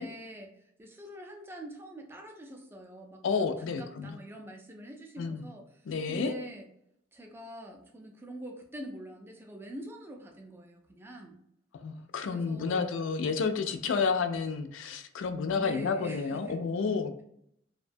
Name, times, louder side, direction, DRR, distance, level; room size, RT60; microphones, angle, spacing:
voice 1, 0.0-6.7 7.1-11.4 12.2-13.0 15.6-16.6, equal, 10° right, 2 dB, 0.3 m, -45 dB
voice 2, 3.2-4.2 5.2-5.5 5.9-6.3 11.8-17.1, left 5 dB, 75° left, 8 dB, 0.3 m, -30 dB
2.6 x 2.2 x 2.5 m, 0.73 s
head